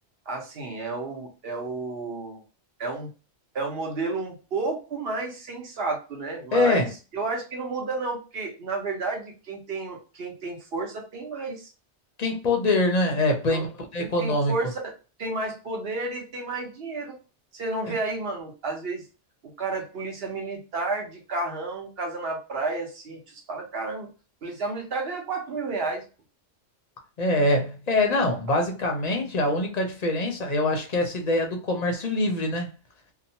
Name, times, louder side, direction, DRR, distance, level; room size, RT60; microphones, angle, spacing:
voice 1, 0.3-2.4 2.8-3.1 3.5-11.7 13.4-13.6 14.0-14.8 15.2-17.2 17.5-19.0 19.4-24.1 24.4-26.0, right 3 dB, 65° right, 1.0 m, -31 dB
voice 2, 6.5-6.9 12.2-13.7 13.9-14.5 27.2-32.7, left 2 dB, 45° left, 0.6 m, -24 dB
2.9 x 2.1 x 2.7 m
omnidirectional pair, 1.2 m